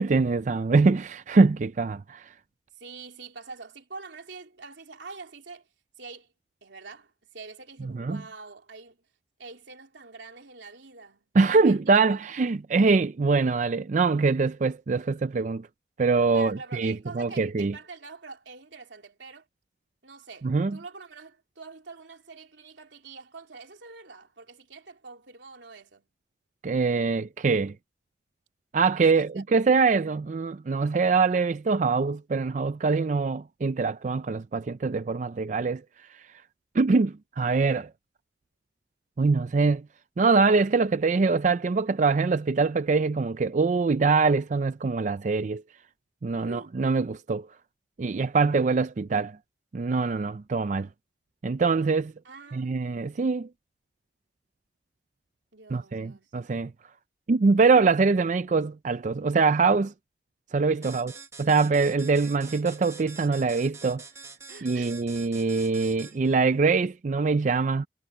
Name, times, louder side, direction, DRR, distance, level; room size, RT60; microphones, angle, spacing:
voice 1, 0.0-2.3 7.9-8.2 11.3-15.7 16.0-17.7 20.4-20.8 26.6-27.8 28.7-35.8 36.1-36.2 36.7-37.9 39.2-39.8 40.2-45.6 46.2-47.5 48.0-49.4 49.7-50.9 51.4-52.1 52.5-53.5 55.7-56.7 57.3-59.9 60.5-61.1 61.4-64.0 64.6-67.9, right 4 dB, 40° right, 0.4 m, -23 dB
voice 2, 2.7-5.7 6.0-6.3 6.6-9.0 9.4-12.2 16.3-19.5 20.0-26.1 28.9-29.4 46.3-46.8 52.2-52.8 55.5-56.3 60.8-61.1 64.5-65.0, right 4 dB, 90° right, 3.3 m, -45 dB
sound 1, 60.8-66.4, right 4 dB, 15° right, 1.1 m, -45 dB
head